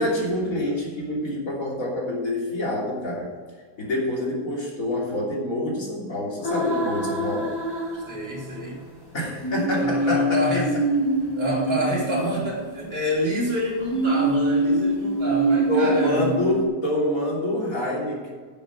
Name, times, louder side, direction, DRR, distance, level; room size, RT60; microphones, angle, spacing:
voice 1, 0.0-3.3 3.8-7.5 9.1-10.4 15.7-18.3, left 1 dB, 45° left, -4 dB, 3.5 m, -26 dB
sound 1, 6.4-8.6 9.4-13.1 13.9-16.7, right 1 dB, 15° left, 1.8 m, -24 dB
voice 2, 7.9-8.8 9.8-10.7 11.3-16.3, equal, 30° right, -5 dB, 3.3 m, -28 dB
9.9 x 7.5 x 5.9 m, 1.5 s
omnidirectional pair, 2.0 m